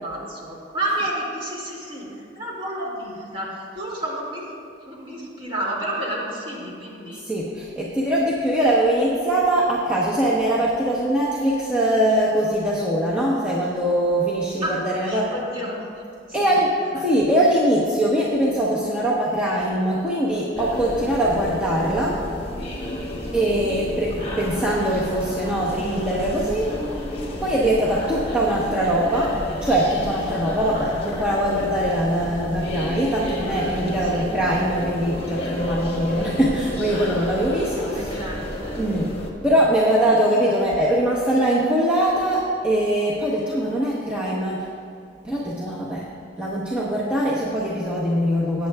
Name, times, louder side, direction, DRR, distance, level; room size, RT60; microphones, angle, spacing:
voice 1, 0.0-4.5 4.9-7.2 14.6-14.7 15.0-15.8 16.3-16.6 30.7-30.9 34.0-34.3 37.8-39.0, right 1 dB, 30° right, -4 dB, 2.4 m, -31 dB
voice 2, 7.2-15.3 16.3-22.2 23.3-26.7 27.4-38.0 38.8-44.7 45.2-46.1 46.4-48.7, right 1 dB, 5° right, -7 dB, 1.0 m, -22 dB
sound 1, 20.5-39.3, left 1 dB, 30° left, 1.3 m, -31 dB
18.0 x 8.9 x 2.3 m, 2.5 s
head